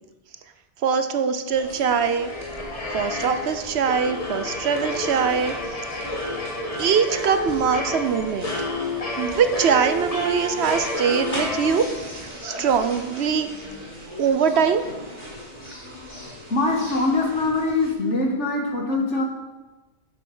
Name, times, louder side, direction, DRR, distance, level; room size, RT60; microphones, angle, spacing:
voice 1, 0.8-2.3 2.9-5.5 6.8-8.5 9.2-11.9 12.4-13.5 14.2-14.8, right 6 dB, 65° right, 10 dB, 1.0 m, -22 dB
sound 1, 1.5-17.9, equal, 35° right, 3.8 m, -39 dB
sound 2, 1.8-12.3, left 1 dB, 30° left, 1.6 m, -30 dB
voice 2, 16.5-19.2, left 2 dB, 85° left, 1 dB, 2.1 m, -23 dB
11.0 x 7.7 x 5.5 m, 1.2 s
omnidirectional pair, 1.2 m